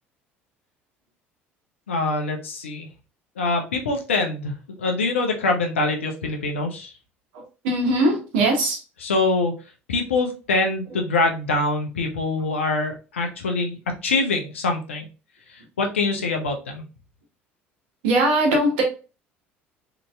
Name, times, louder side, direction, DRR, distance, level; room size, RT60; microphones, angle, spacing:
voice 1, 1.9-2.9 3.4-6.9 9.0-9.5 9.9-15.1 15.5-16.8, left 3 dB, 85° left, 0.6 m, -24 dB
voice 2, 7.6-8.8 18.0-18.8, right 1 dB, 70° right, 0.9 m, -20 dB
2.8 x 2.6 x 2.2 m
hypercardioid pair, 65°, 7 cm